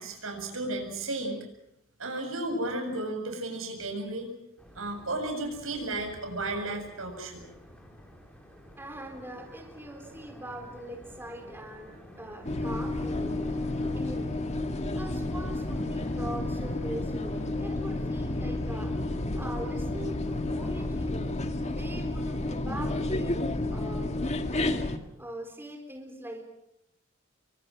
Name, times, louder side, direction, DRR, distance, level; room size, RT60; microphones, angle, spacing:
voice 1, 0.0-1.4 2.0-4.3 4.8-7.4, right 2 dB, 80° right, 4 dB, 7.4 m, -33 dB
sound 1, 4.6-21.2, equal, 5° left, 4.7 m, -51 dB
voice 2, 8.8-13.4 13.9-14.4 14.9-18.9 19.3-21.1 21.6-23.4 23.7-24.2 25.1-26.5, right 1 dB, 10° right, 3 dB, 4.0 m, -42 dB
sound 2, 12.4-25.0, left 2 dB, 35° left, 1.8 m, -31 dB
29.0 x 24.0 x 6.3 m, 0.79 s
head